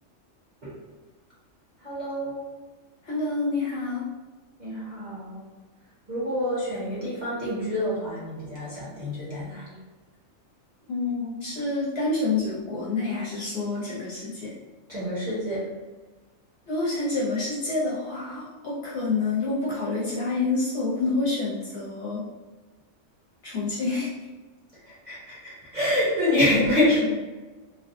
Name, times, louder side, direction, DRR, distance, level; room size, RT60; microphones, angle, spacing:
voice 1, 1.8-2.4 4.6-5.4 6.1-9.8 14.9-15.6 24.8-27.0, left 1 dB, 40° right, -8 dB, 0.9 m, -27 dB
voice 2, 3.1-4.1 10.9-14.5 16.7-22.2 23.4-24.1, left 3 dB, 55° left, -8 dB, 1.1 m, -28 dB
3.2 x 2.3 x 2.6 m, 1.3 s
omnidirectional pair, 1.3 m